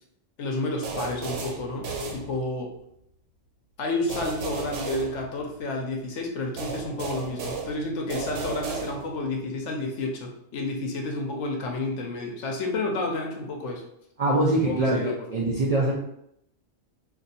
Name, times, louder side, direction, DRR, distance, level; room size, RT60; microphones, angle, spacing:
voice 1, 0.4-2.7 3.8-13.8 14.6-15.2, left 2 dB, 80° left, 1 dB, 0.9 m, -30 dB
sound 1, 0.8-2.8 4.1-5.8 6.6-9.3, right 4 dB, 85° right, 1.0 m, -35 dB
voice 2, 14.2-15.9, right 1 dB, 60° right, -3 dB, 0.4 m, -23 dB
2.6 x 2.5 x 4.0 m, 0.76 s
omnidirectional pair, 1.2 m